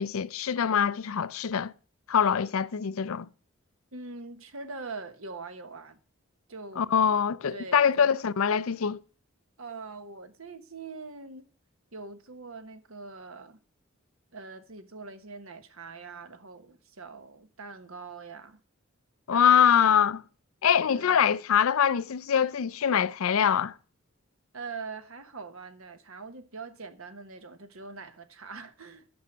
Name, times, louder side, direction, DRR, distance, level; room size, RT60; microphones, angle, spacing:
voice 1, 0.0-1.7 2.1-3.3 6.8-9.0 19.3-20.2 20.6-23.7, left 8 dB, 80° left, 0.5 m, -24 dB
voice 2, 3.9-6.0 6.5-6.9 7.5-8.1 9.6-11.5 11.9-13.6 14.3-18.6 19.3-20.2 20.9-21.4 24.5-29.1, right 4 dB, 80° right, 1.3 m, -43 dB
9.3 x 6.3 x 7.4 m
head